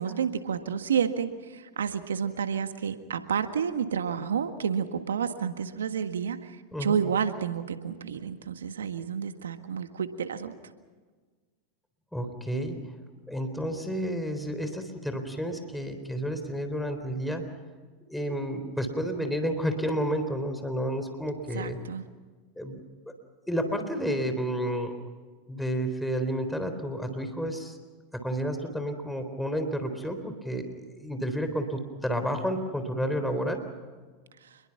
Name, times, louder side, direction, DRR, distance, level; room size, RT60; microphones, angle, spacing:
voice 1, 0.0-10.5 21.5-22.1 34.4-34.5, right 7 dB, 85° right, 9 dB, 1.7 m, -30 dB
voice 2, 12.1-12.8 13.3-17.4 18.1-21.8 22.6-22.8 23.5-25.0 25.5-27.8 28.1-33.6, equal, 5° left, 7 dB, 3.9 m, -31 dB
28.0 x 22.0 x 5.9 m, 1.4 s
hypercardioid pair, 95°, 0 cm